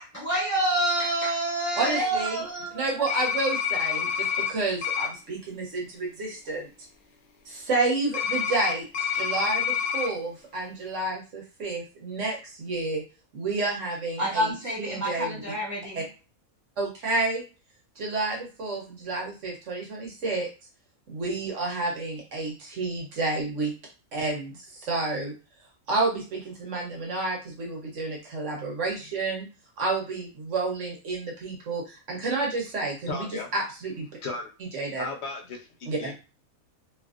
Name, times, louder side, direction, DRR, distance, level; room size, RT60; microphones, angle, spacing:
voice 1, 0.0-3.1 14.2-16.0, right 1 dB, 10° right, -7 dB, 1.5 m, -28 dB
voice 2, 1.8-2.4 2.7-6.7 7.5-13.0 13.3-14.5 14.8-15.4 15.9-16.0 16.8-17.4 18.0-20.5 21.1-23.7 24.1-25.3 25.9-29.5 29.8-34.1 34.6-35.1 35.8-36.1, right 3 dB, 60° right, -1 dB, 1.2 m, -30 dB
sound 1, 3.1-4.5 4.8-5.1 8.1-10.1, left 8 dB, 80° left, 0.4 m, -27 dB
voice 3, 33.1-33.5 34.2-34.5 35.0-35.6 36.0-36.1, left 3 dB, 55° left, 1 dB, 0.9 m, -34 dB
2.8 x 2.6 x 2.4 m, 0.32 s
omnidirectional pair, 1.5 m